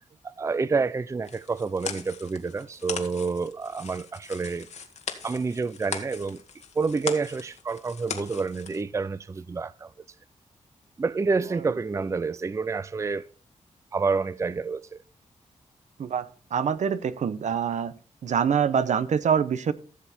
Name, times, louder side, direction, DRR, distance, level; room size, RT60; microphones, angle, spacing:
voice 1, 0.2-4.7 5.2-6.4 6.8-9.9 11.0-13.3 13.9-15.0, right 4 dB, 25° right, 0.4 m, -28 dB
sound 1, 1.2-8.8, left 6 dB, 65° left, 1.5 m, -39 dB
voice 2, 16.5-17.9 18.2-19.7, right 7 dB, 75° right, 0.8 m, -25 dB
14.5 x 7.0 x 4.2 m
wide cardioid pair, 100°, 12 cm